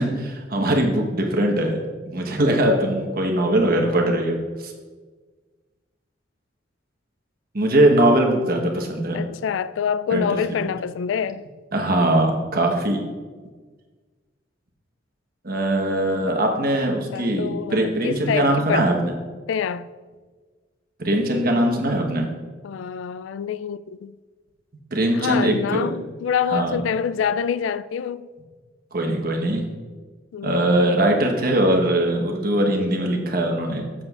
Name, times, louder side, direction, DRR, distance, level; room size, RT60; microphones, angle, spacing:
voice 1, 0.0-4.7 7.5-9.2 10.1-10.7 11.7-13.0 15.4-19.1 21.0-22.3 24.9-25.9 26.5-26.8 28.9-29.6 30.4-33.9, right 1 dB, 50° right, 1.1 m, -21 dB
voice 2, 9.1-11.4 16.8-18.9 19.5-19.9 22.6-24.1 25.1-28.3 30.3-30.6, left 7 dB, 85° left, 0.3 m, -26 dB
13.5 x 7.5 x 2.4 m
head